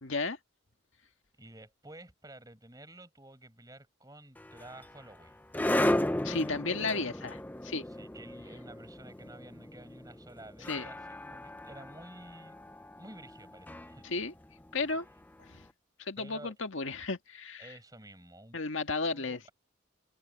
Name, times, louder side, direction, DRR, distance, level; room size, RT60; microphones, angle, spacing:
voice 1, 0.0-0.4 6.2-7.8 10.7-10.9 14.0-14.3 14.7-15.1 16.0-17.7 18.5-19.5, left 3 dB, 75° left, 1.7 m, -33 dB
voice 2, 1.4-5.4 7.8-12.6 13.0-14.1 16.2-16.5 17.6-18.6 19.1-19.5, right 1 dB, 20° right, 5.4 m, -51 dB
sound 1, 4.4-15.5, left 1 dB, 10° left, 0.4 m, -35 dB
head